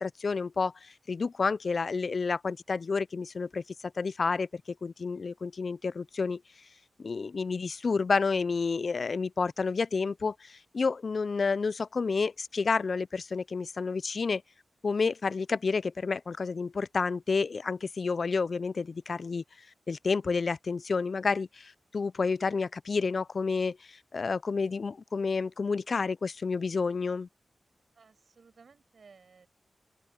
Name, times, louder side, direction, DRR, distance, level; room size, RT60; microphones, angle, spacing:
voice 1, 0.0-3.6 4.0-6.4 7.0-14.4 14.8-19.4 19.9-27.3, left 4 dB, 55° left, 0.3 m, -30 dB
voice 2, 28.0-29.5, right 5 dB, 65° right, 5.5 m, -57 dB
open air
wide cardioid pair, 115°, 0 cm